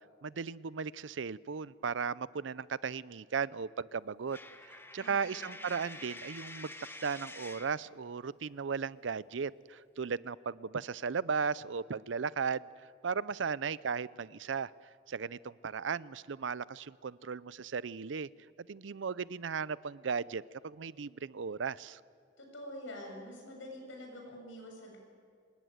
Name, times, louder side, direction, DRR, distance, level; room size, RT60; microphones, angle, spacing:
voice 1, 0.2-4.4 4.6-6.7 7.0-12.6 13.0-14.7 15.1-18.3 18.7-22.0, right 5 dB, 75° right, 19 dB, 0.5 m, -36 dB
Coin (dropping), 4.3-7.8, left 2 dB, 10° left, 1.1 m, -48 dB
voice 2, 5.0-5.6 22.4-25.0, left 1 dB, 90° left, 1 dB, 7.4 m, -46 dB
26.0 x 20.5 x 9.3 m, 2.2 s
head